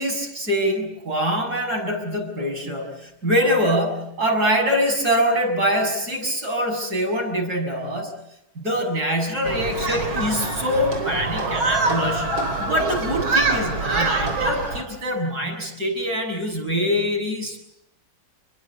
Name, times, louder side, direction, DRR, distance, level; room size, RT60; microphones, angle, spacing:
voice 1, 0.0-8.1 8.6-12.3 12.6-17.6, equal, 50° right, 2 dB, 7.6 m, -24 dB
Human group actions, 9.4-14.8, right 3 dB, 80° right, 4.6 m, -24 dB
28.5 x 23.0 x 8.4 m, 0.84 s
omnidirectional pair, 2.2 m